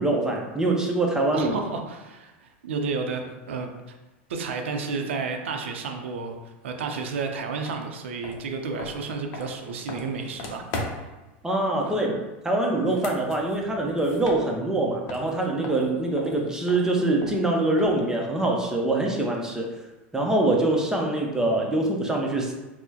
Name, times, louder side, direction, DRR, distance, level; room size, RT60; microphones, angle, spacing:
voice 1, 0.0-1.5 11.4-19.7 20.1-22.5, right 2 dB, 10° right, 0 dB, 0.6 m, -24 dB
voice 2, 1.3-3.7 4.3-10.7, right 4 dB, 85° right, 4 dB, 0.5 m, -31 dB
sound 1, 7.6-7.8 8.2-11.2 12.7-14.8 15.1-18.1, left 2 dB, 55° left, 0.6 m, -38 dB
4.4 x 2.1 x 2.8 m, 1.1 s
hypercardioid pair, 105°, 6 cm